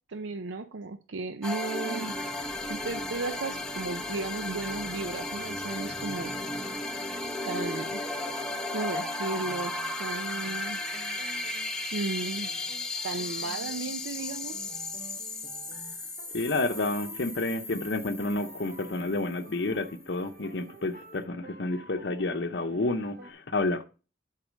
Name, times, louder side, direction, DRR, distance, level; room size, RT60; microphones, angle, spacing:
voice 1, 0.1-6.4 7.5-8.0 8.7-10.8 11.9-12.5 13.0-14.8, right 3 dB, 85° right, 0.6 m, -35 dB
sound 1, 1.4-19.9, left 2 dB, 5° left, 0.8 m, -35 dB
sound 2, 7.9-23.3, right 1 dB, 50° right, 1.1 m, -50 dB
voice 2, 16.3-23.8, left 2 dB, 60° left, 0.7 m, -30 dB
10.5 x 4.2 x 5.1 m
head